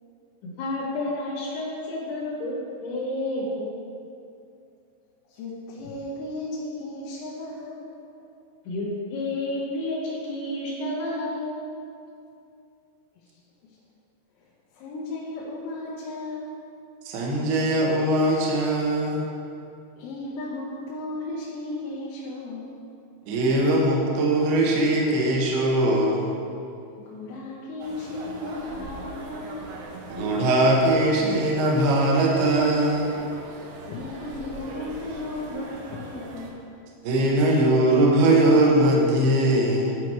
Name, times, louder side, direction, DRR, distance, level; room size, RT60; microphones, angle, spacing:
voice 1, 0.4-2.5 2.8-3.7 8.6-11.6, left 1 dB, 70° left, -5 dB, 3.2 m, -30 dB
voice 2, 5.3-7.9 13.2-13.4 13.7-13.8 14.4-14.5 14.7-16.6 20.0-22.9 27.0-29.7 33.8-36.6, left 2 dB, 85° left, -7 dB, 3.7 m, -35 dB
voice 3, 17.1-19.3 23.3-26.3 30.1-33.2 37.0-40.0, right 1 dB, 70° right, -2 dB, 2.6 m, -21 dB
sound 1, 27.8-36.5, right 3 dB, 85° right, 3.7 m, -41 dB
12.0 x 4.6 x 4.9 m, 2.6 s
omnidirectional pair, 6.0 m